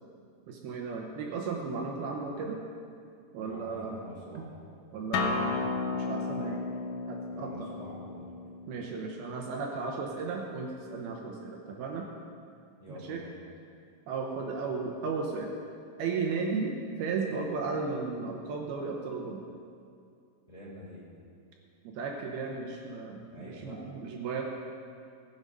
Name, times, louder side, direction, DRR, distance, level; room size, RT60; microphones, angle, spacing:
voice 1, 0.5-2.6 3.3-3.9 4.3-4.5 4.9-6.6 7.1-7.7 8.7-12.1 12.9-13.2 14.1-15.5 16.0-16.7 17.0-19.4 21.8-24.4, right 4 dB, 75° right, 1 dB, 2.7 m, -35 dB
voice 2, 3.4-4.5 7.3-8.3 12.8-13.3 20.5-21.0 23.2-23.8, left 1 dB, 10° left, -7 dB, 3.3 m, -46 dB
Acoustic guitar, 5.1-10.3, left 3 dB, 75° left, 2.1 m, -34 dB
19.0 x 7.6 x 5.4 m, 2.4 s
omnidirectional pair, 4.7 m